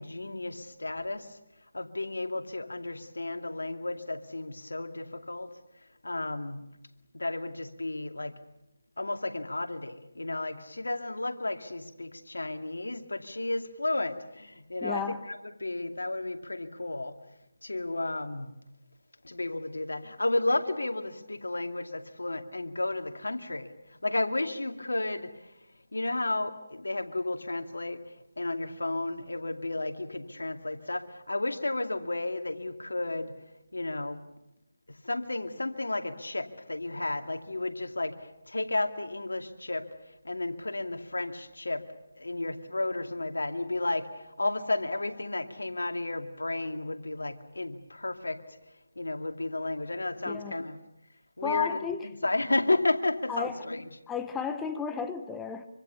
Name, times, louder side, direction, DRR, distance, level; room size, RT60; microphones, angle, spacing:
voice 1, 0.0-1.4 1.7-5.5 6.0-6.6 7.1-8.4 9.0-15.0 15.3-17.2 17.6-18.5 19.2-23.7 24.0-25.3 25.9-28.0 28.4-33.3 33.7-34.2 35.0-38.2 38.5-39.9 40.2-41.8 42.1-48.4 49.0-50.8 51.4-53.9, left 2 dB, 85° left, 6 dB, 2.4 m, -32 dB
voice 2, 14.8-15.2 50.2-50.6 51.4-52.1 53.3-53.6 54.1-55.7, left 7 dB, 5° left, 8 dB, 1.0 m, -33 dB
26.0 x 25.0 x 7.0 m, 0.90 s
figure-of-eight pair, 160°, 0 cm